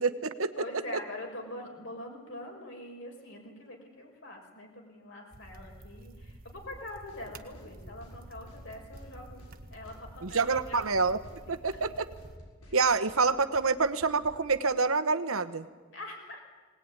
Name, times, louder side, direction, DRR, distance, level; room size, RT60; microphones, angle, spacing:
voice 1, 0.0-0.5 10.2-11.2 11.5-12.1 12.7-15.6, right 4 dB, 70° right, 12 dB, 1.1 m, -27 dB
voice 2, 0.6-11.1 11.4-11.9 12.6-13.3 15.9-16.4, left 1 dB, 60° left, 1 dB, 5.9 m, -44 dB
sound 1, 5.3-12.4, right 1 dB, 40° right, 1.3 m, -50 dB
sound 2, 7.1-7.2 7.5-7.7 8.0-8.2 8.5-9.1 9.4-9.5 9.8-10.0 10.3-10.9 11.2-11.4 11.7-11.9 12.2-12.8 13.1-13.2 13.5-13.7 14.0-14.4, equal, 85° left, 6.9 m, -53 dB
21.0 x 19.0 x 9.8 m, 1.4 s
head